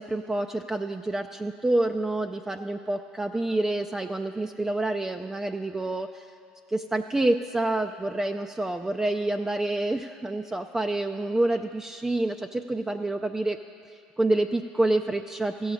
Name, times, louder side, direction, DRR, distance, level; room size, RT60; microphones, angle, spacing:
voice 1, 0.0-6.3 6.7-13.6 13.9-15.7, right 2 dB, 15° right, 5 dB, 0.4 m, -28 dB
16.0 x 7.0 x 5.0 m, 2.4 s
hypercardioid pair, 75°, 4 cm